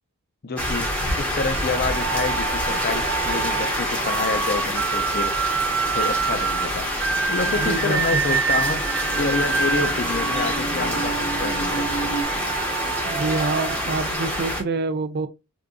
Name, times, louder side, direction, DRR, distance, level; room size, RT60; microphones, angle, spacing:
voice 1, 0.4-0.9 1.2-5.3 5.9-6.9 7.3-8.8 9.2-12.1, left 4 dB, 45° left, 0.6 m, -28 dB
sound 1, 0.6-14.6, equal, 5° left, 0.8 m, -26 dB
sound 2, 1.8-14.6, right 6 dB, 70° right, 0.8 m, -28 dB
sound 3, 6.7-12.2, right 3 dB, 75° left, 0.9 m, -34 dB
voice 2, 7.5-8.2 12.8-15.3, right 3 dB, 45° right, 0.4 m, -27 dB
3.7 x 2.6 x 2.2 m
head